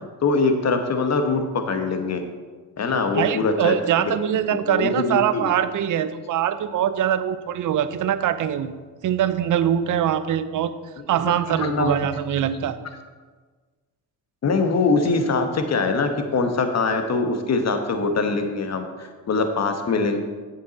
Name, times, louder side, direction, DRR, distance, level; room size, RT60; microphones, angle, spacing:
voice 1, 0.2-2.2 2.8-3.7 4.7-5.5 11.2-12.0 14.4-20.2, left 4 dB, 40° left, 6 dB, 1.2 m, -23 dB
voice 2, 3.1-8.8 9.0-10.7 11.1-12.8, right 10 dB, 50° right, 13 dB, 0.6 m, -23 dB
7.8 x 7.8 x 4.1 m, 1.4 s
supercardioid pair, 75°, 40 cm